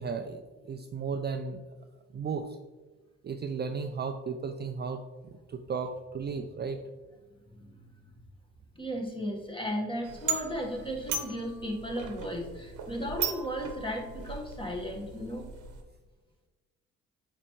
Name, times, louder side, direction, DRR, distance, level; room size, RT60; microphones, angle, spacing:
voice 1, 0.0-1.6 2.1-2.5 3.2-6.8, right 5 dB, 35° right, 6 dB, 0.4 m, -35 dB
voice 2, 8.7-15.5, equal, 15° left, 1 dB, 1.5 m, -35 dB
sound 1, 10.0-15.8, right 6 dB, 80° right, 0.9 m, -37 dB
8.1 x 4.4 x 3.2 m, 1.3 s
cardioid pair, 90°, 30 cm